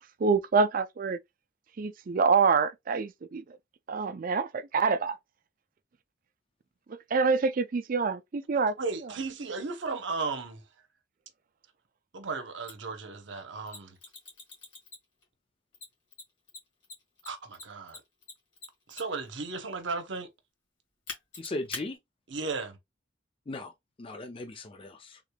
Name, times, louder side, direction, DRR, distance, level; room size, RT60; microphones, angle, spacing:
voice 1, 0.2-1.2 1.8-3.4 3.9-5.2 6.9-8.8, right 5 dB, 45° right, 0.4 m, -26 dB
voice 2, 8.8-10.6 12.1-14.0 17.3-18.0 18.9-20.3 22.3-22.8, right 4 dB, 70° right, 0.8 m, -35 dB
Mechanisms, 12.7-12.8 13.7-15.2 15.7-19.3 21.1-21.8, left 3 dB, 70° left, 1.7 m, -43 dB
voice 3, 21.4-22.0 23.5-23.7 24.0-25.2, left 2 dB, 30° left, 0.4 m, -37 dB
3.6 x 3.3 x 2.2 m
head